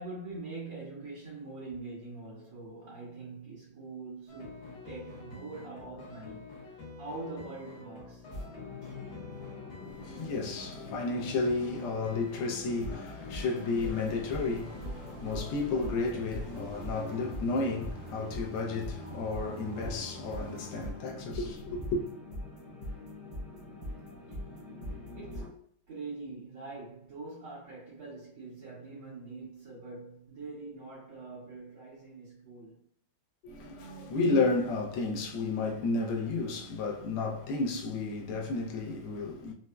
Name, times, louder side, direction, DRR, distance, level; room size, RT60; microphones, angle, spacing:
voice 1, 0.0-8.3 23.5-23.7 24.3-24.4 25.1-25.6 25.9-32.8, right 3 dB, 60° right, 1.9 m, -44 dB
sound 1, 4.3-15.9, left 2 dB, 65° left, 1.9 m, -48 dB
sound 2, 8.3-25.5, left 1 dB, 40° right, 0.6 m, -43 dB
voice 2, 9.8-22.0 33.4-39.5, left 3 dB, 80° left, 1.5 m, -32 dB
sound 3, 13.9-20.9, right 2 dB, 85° right, 0.8 m, -48 dB
4.4 x 2.1 x 2.2 m
omnidirectional pair, 2.3 m